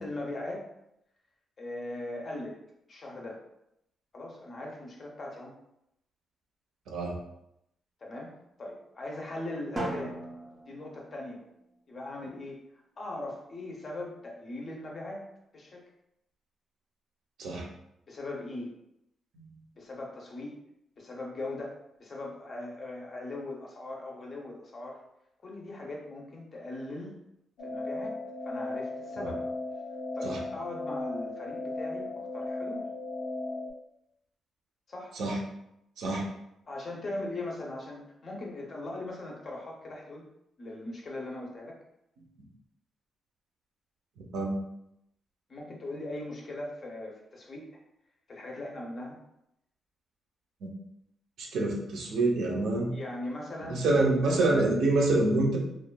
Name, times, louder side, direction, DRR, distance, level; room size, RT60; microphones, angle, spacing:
voice 1, 0.0-0.7 1.6-2.6 2.9-3.4 4.1-5.5 8.0-8.3 8.6-10.1 10.7-11.4 11.9-12.6 13.0-15.2 15.5-15.8 18.1-18.7 19.8-20.6 21.0-25.0 25.4-27.1 27.6-28.2 28.4-29.4 30.1-32.9 34.9-35.2 36.7-40.2 40.6-41.8 45.5-47.8 48.3-49.2 52.9-53.8, left 2 dB, 35° left, -1 dB, 0.5 m, -39 dB
Drum, 9.8-11.7, right 1 dB, 20° right, 0.5 m, -38 dB
sound 1, 27.6-33.7, left 2 dB, 85° left, 0.5 m, -36 dB
voice 2, 51.4-52.9 53.7-55.6, right 2 dB, 75° right, -1 dB, 0.6 m, -26 dB
3.0 x 2.2 x 2.2 m, 0.81 s
wide cardioid pair, 165°, 0 cm